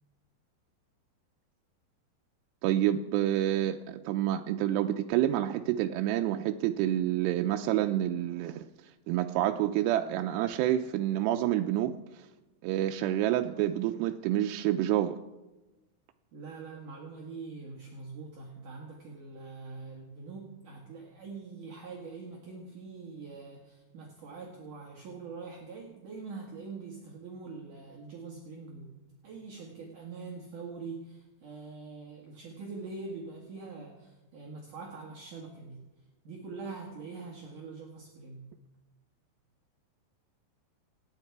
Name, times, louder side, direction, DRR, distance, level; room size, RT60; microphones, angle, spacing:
voice 1, 2.6-8.7 9.1-12.3 12.6-15.2, right 12 dB, 90° right, 5 dB, 2.8 m, -28 dB
voice 2, 16.3-28.9 29.2-35.9 36.2-38.5, right 4 dB, 55° right, -1 dB, 3.1 m, -44 dB
28.5 x 9.9 x 4.7 m, 1.1 s
omnidirectional pair, 4.8 m